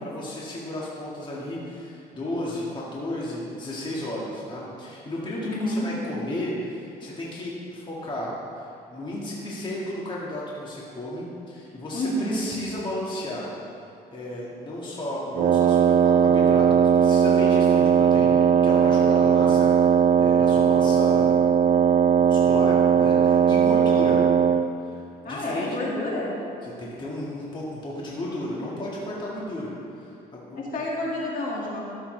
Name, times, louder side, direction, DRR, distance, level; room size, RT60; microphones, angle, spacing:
voice 1, 0.0-13.5 14.1-19.7 20.2-21.4 22.2-24.2 24.8-25.8 26.6-30.9, left 1 dB, 30° left, -5 dB, 1.8 m, -33 dB
voice 2, 5.4-5.9 11.9-12.4 25.2-26.3 30.5-31.9, left 1 dB, 55° left, -4 dB, 2.1 m, -29 dB
Wind instrument woodwind instrument, 15.3-24.7, right 8 dB, 45° right, 0.4 m, -18 dB
13.0 x 7.2 x 3.3 m, 2.8 s
cardioid pair, 110°, 17 cm